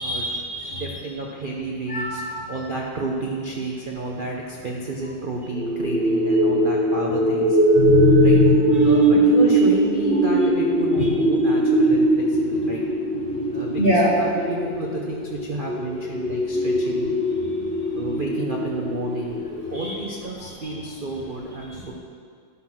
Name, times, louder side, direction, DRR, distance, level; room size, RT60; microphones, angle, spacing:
voice 1, 0.0-0.8 1.9-2.2 7.7-9.1 13.8-14.1 19.8-19.9 20.6-20.7, left 5 dB, 40° left, -3 dB, 0.9 m, -22 dB
voice 2, 0.7-2.2 2.5-7.6 8.2-8.4 8.8-12.8 13.5-17.1 18.0-19.4 19.7-21.9, right 2 dB, 55° right, -2 dB, 0.5 m, -31 dB
sound 1, 5.5-19.9, right 2 dB, 5° left, 0.8 m, -21 dB
11.0 x 6.1 x 6.1 m, 2.1 s
omnidirectional pair, 2.3 m